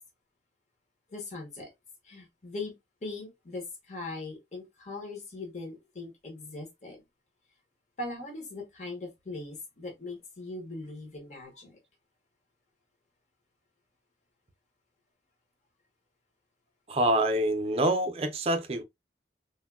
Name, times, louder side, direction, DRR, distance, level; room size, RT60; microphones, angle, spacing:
voice 1, 1.1-1.7 2.0-7.0 8.0-11.8, left 2 dB, 40° left, 0.9 m, -40 dB
voice 2, 16.9-18.8, right 1 dB, 35° right, 0.4 m, -26 dB
3.4 x 2.2 x 2.2 m
head